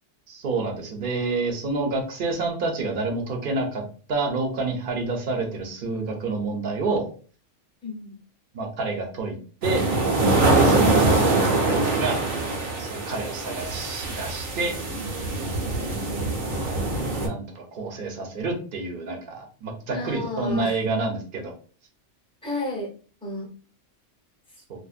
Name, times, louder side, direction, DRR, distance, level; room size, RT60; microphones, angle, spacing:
voice 1, 0.3-3.8 4.1-7.1 8.5-9.8 10.5-12.2 12.8-14.8 17.2-21.5, right 3 dB, 50° right, 2 dB, 0.8 m, -28 dB
voice 2, 7.8-8.2 10.6-11.0 15.8-16.3 19.9-20.8 22.4-22.9 23.2-23.5, left 1 dB, 5° left, -4 dB, 0.6 m, -32 dB
sound 1, 9.6-17.3, right 2 dB, 90° right, 1.1 m, -23 dB
2.5 x 2.0 x 2.4 m, 0.39 s
omnidirectional pair, 1.3 m